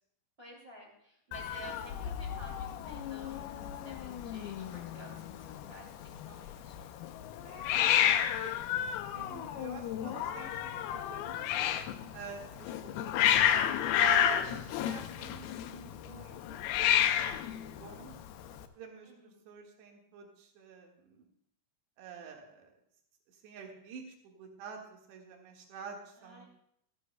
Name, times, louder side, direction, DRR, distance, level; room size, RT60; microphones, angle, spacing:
voice 1, 0.4-6.7 12.0-12.3 19.0-19.5 26.2-26.5, right 1 dB, 25° right, -2 dB, 1.3 m, -52 dB
Hiss, 1.3-18.7, left 11 dB, 85° left, 2.2 m, -31 dB
voice 2, 7.5-8.1 8.4-8.9 9.1-11.5 12.1-13.3 14.0-18.2 18.8-21.3 22.0-22.7 23.3-26.5, right 7 dB, 70° right, 1 dB, 3.8 m, -47 dB
25.5 x 9.9 x 2.2 m, 0.74 s
omnidirectional pair, 5.2 m